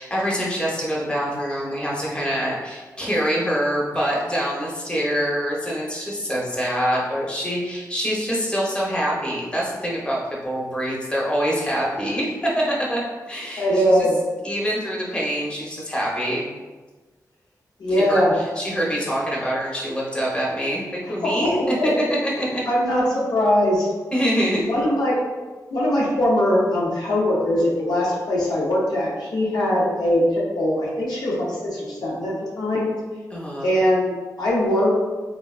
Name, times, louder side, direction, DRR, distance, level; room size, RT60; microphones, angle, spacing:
voice 1, 0.0-13.0 13.3-13.6 14.4-16.4 18.0-21.6 22.0-22.6 24.1-24.7 33.3-33.7, equal, 15° left, -5 dB, 0.8 m, -25 dB
voice 2, 13.6-14.2 17.8-18.4 21.0-21.9 22.7-23.9 24.6-25.2 25.7-32.9 33.6-35.0, left 1 dB, 80° left, -5 dB, 0.7 m, -21 dB
3.3 x 2.1 x 2.3 m, 1.3 s
cardioid pair, 70°, 7 cm